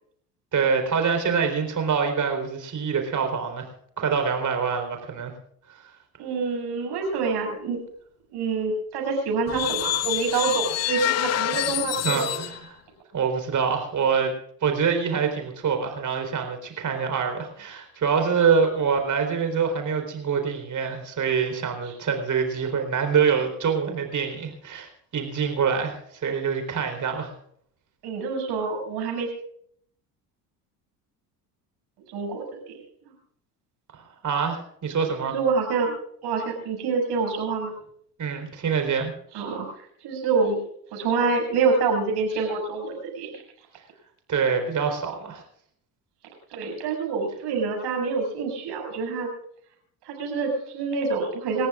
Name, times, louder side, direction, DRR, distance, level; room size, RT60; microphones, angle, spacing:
voice 1, 0.5-3.7 4.0-5.3 11.5-11.6 12.0-12.8 13.1-14.3 14.6-27.3 34.2-35.4 38.2-39.1 44.3-45.4, right 6 dB, 40° right, 5 dB, 4.2 m, -25 dB
voice 2, 6.2-7.8 8.3-12.4 28.0-29.3 32.1-32.8 35.2-35.9 36.2-37.7 39.3-39.7 40.0-40.6 40.9-43.4 46.5-49.3 50.1-51.7, right 4 dB, 55° right, 1 dB, 6.9 m, -26 dB
sound 1, 9.5-12.6, left 14 dB, 35° left, 0.6 m, -27 dB
28.5 x 14.5 x 2.5 m, 0.66 s
hypercardioid pair, 65°, 47 cm